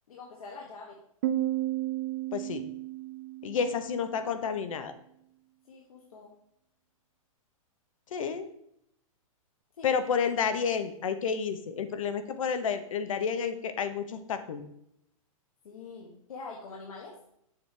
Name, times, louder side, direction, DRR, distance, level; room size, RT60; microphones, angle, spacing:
voice 1, 0.1-1.0 3.4-3.7 5.7-6.3 9.8-10.0 15.6-17.2, left 4 dB, 85° left, -1 dB, 1.6 m, -45 dB
Piano, 1.2-4.7, right 14 dB, 25° right, 0.4 m, -33 dB
voice 2, 2.3-2.6 3.4-4.9 8.1-8.5 9.8-14.7, left 6 dB, 70° left, 10 dB, 0.9 m, -30 dB
7.5 x 6.9 x 3.4 m, 0.74 s
hypercardioid pair, 170°, 18 cm